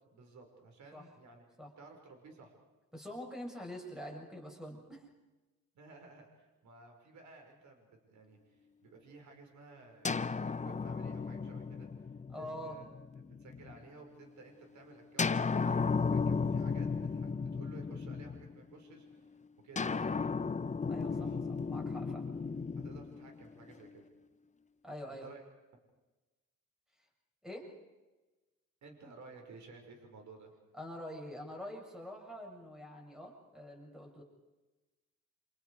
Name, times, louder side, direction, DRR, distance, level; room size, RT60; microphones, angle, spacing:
voice 1, 0.1-1.4 1.8-2.5 5.7-11.9 12.3-12.9 13.2-19.4 19.6-20.3 21.1-21.4 22.8-24.0 25.2-25.4 28.8-30.5, right 4 dB, 70° right, 4 dB, 5.4 m, -55 dB
voice 2, 2.9-5.1 12.3-12.8 20.9-22.3 24.8-25.3 27.4-27.7 30.7-34.2, equal, ahead, 0 dB, 7.2 m, -45 dB
sound 1, 10.0-13.8 15.2-18.7 19.8-23.9, left 5 dB, 25° left, 0.9 m, -35 dB
28.0 x 27.0 x 4.9 m, 1.1 s
cardioid pair, 90°, 30 cm